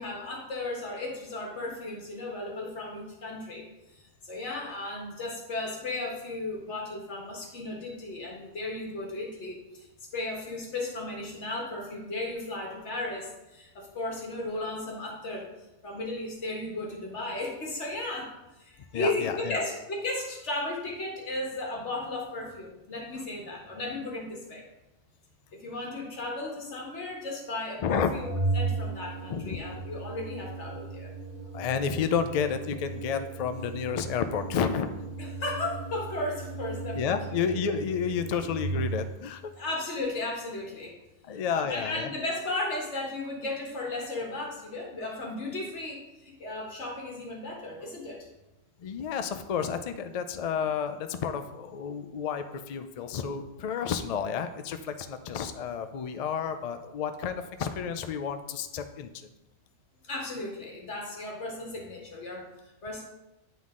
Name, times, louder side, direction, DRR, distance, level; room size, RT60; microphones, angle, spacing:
voice 1, 0.0-3.6 3.9-9.9 10.1-15.5 15.8-18.3 18.6-24.6 25.5-28.3 28.5-31.1 35.2-37.2 39.6-41.0 41.3-48.3 60.0-63.0, left 2 dB, 65° left, -1 dB, 1.7 m, -35 dB
voice 2, 18.9-19.6 27.8-28.1 29.3-29.6 31.5-34.9 36.9-39.5 41.2-42.1 48.8-59.3, left 7 dB, 85° left, 9 dB, 0.3 m, -31 dB
Organ, 28.2-39.2, right 3 dB, 50° right, 1.0 m, -36 dB
9.3 x 3.9 x 3.6 m, 0.96 s
omnidirectional pair, 1.3 m